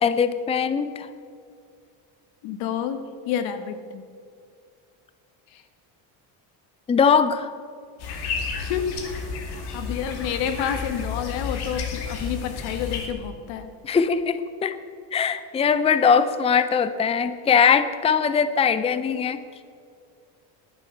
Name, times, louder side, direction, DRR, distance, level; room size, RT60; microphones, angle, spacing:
voice 1, 0.0-1.1 6.9-7.5 13.8-14.8 15.1-19.6, left 6 dB, 15° left, 12 dB, 0.5 m, -21 dB
voice 2, 2.4-4.1 5.5-5.6 8.6-8.9 9.4-13.7, left 8 dB, 80° left, 9 dB, 1.4 m, -29 dB
sound 1, 8.0-13.1, left 5 dB, 60° left, 2.4 m, -32 dB
11.0 x 10.0 x 7.2 m, 2.3 s
cardioid pair, 115°, 43 cm